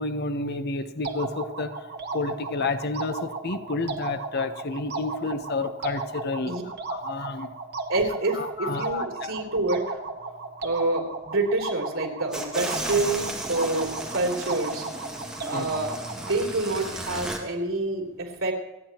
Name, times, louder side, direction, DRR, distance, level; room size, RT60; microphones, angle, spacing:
voice 1, 0.0-1.7 2.1-6.5 6.9-7.5 8.3-9.3 15.5-15.6, left 3 dB, 55° left, 9 dB, 1.0 m, -30 dB
sound 1, 1.0-16.4, right 3 dB, 55° right, 1.2 m, -35 dB
voice 2, 7.9-10.0 10.6-14.9 15.4-18.5, right 2 dB, 85° right, 0 dB, 3.5 m, -27 dB
sound 2, 12.3-17.4, right 1 dB, 5° right, 2.1 m, -35 dB
29.0 x 9.7 x 3.0 m, 1.1 s
head